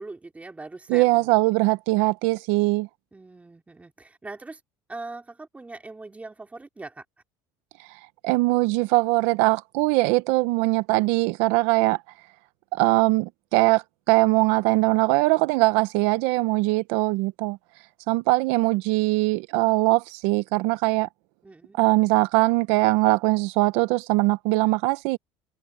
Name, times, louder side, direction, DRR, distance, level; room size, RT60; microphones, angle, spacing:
voice 1, 0.0-1.3 3.1-4.6 4.9-7.0 21.4-21.8, right 3 dB, 15° right, 3.8 m, -41 dB
voice 2, 0.9-2.9 7.8-12.0 12.7-17.6 18.1-21.1 21.8-25.2, right 21 dB, 75° right, 0.8 m, -21 dB
supercardioid pair, 115°, 11 cm